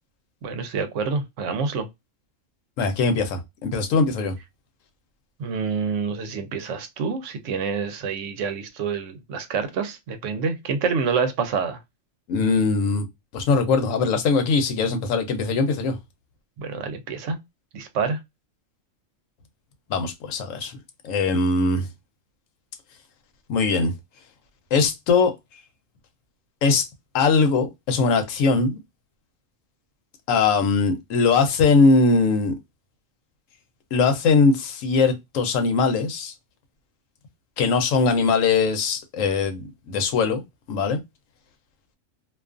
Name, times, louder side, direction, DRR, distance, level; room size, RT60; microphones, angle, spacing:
voice 1, 0.4-1.9 5.4-11.8 16.6-17.4 17.7-18.2, right 5 dB, 75° right, 0.9 m, -27 dB
voice 2, 2.8-4.3 12.3-13.0 13.3-15.9 19.9-20.7 21.0-21.9 23.5-23.9 24.7-25.3 26.6-26.8 27.1-28.8 30.3-32.5 33.9-36.3 37.6-40.4 40.7-41.0, left 4 dB, 80° left, 1.0 m, -21 dB
2.4 x 2.4 x 2.4 m
omnidirectional pair, 1.3 m